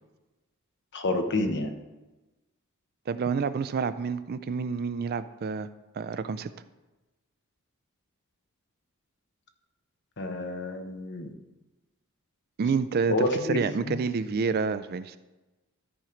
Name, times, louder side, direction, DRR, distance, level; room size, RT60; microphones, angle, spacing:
voice 1, 0.9-1.7 10.2-11.3 13.1-14.0, left 2 dB, 55° left, 7 dB, 0.9 m, -29 dB
voice 2, 3.1-5.7 6.0-6.5 12.6-15.2, right 5 dB, 45° right, 13 dB, 0.4 m, -28 dB
12.5 x 4.5 x 5.0 m, 1.1 s
head